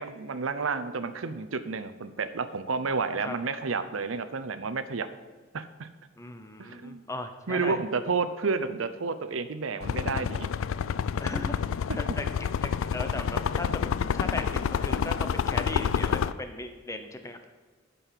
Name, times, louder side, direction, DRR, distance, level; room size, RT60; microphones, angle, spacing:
voice 1, 0.0-5.1 5.5-5.9 6.6-7.0 7.5-10.5 11.9-12.0, right 4 dB, 90° right, 11 dB, 0.7 m, -31 dB
voice 2, 6.2-7.8 11.2-12.3 12.6-17.5, left 2 dB, 15° left, 7 dB, 0.8 m, -37 dB
sound 1, 9.8-16.3, left 7 dB, 85° left, 0.3 m, -28 dB
12.5 x 5.4 x 5.8 m, 1.3 s
head